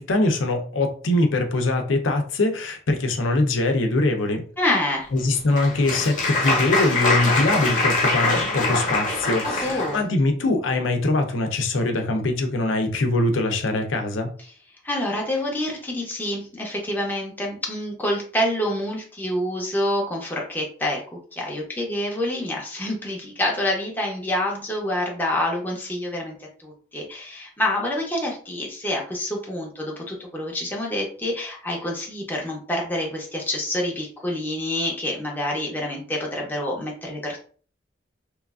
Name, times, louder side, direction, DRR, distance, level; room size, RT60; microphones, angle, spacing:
voice 1, 0.0-4.4 5.1-14.3, left 2 dB, 85° left, 5 dB, 0.6 m, -23 dB
voice 2, 4.6-5.1 9.4-10.0 14.8-21.0 21.3-26.4 26.6-37.4, left 1 dB, 10° left, -2 dB, 0.6 m, -27 dB
Applause, 5.2-10.0, left 2 dB, 40° left, 0.8 m, -23 dB
3.0 x 2.4 x 2.3 m, 0.42 s
head